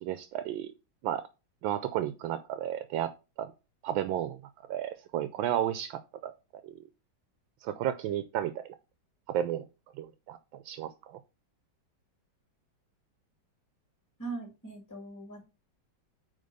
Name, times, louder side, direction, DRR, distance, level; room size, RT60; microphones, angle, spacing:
voice 1, 0.0-0.7 1.0-1.2 1.6-3.1 3.4-3.5 3.8-4.4 4.7-6.3 6.6-6.7 7.6-8.6 9.3-9.6 10.0-10.4 10.6-11.2, right 11 dB, 85° right, 1.4 m, -32 dB
voice 2, 14.2-15.5, right 3 dB, 10° left, 2.1 m, -40 dB
8.8 x 3.5 x 5.3 m
omnidirectional pair, 2.1 m